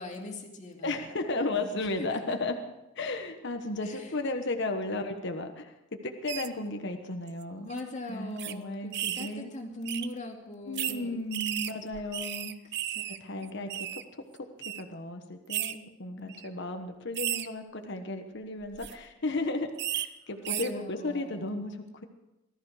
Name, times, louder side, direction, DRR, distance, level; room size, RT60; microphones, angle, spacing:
voice 1, 0.0-1.0 1.5-2.4 3.8-4.2 7.7-11.2 12.6-13.7 16.2-16.4 20.4-21.6, left 1 dB, 35° left, 2 dB, 2.5 m, -41 dB
voice 2, 0.8-2.6 3.0-5.7 6.0-7.7 8.1-9.5 10.7-12.6 13.2-14.0 14.7-22.0, left 2 dB, 60° left, 5 dB, 1.3 m, -34 dB
sound 1, 6.3-6.5 7.3-7.4 7.7-7.8 8.4-8.5 8.9-9.3 9.9-10.1 10.8-11.0 11.3-13.2 13.4-14.0 14.6-14.8 15.5-15.7 16.3-16.5 17.1-17.5 18.6-18.9 19.8-20.1 20.4-20.7, right 12 dB, 55° right, 0.7 m, -34 dB
19.5 x 13.5 x 5.0 m, 0.93 s
head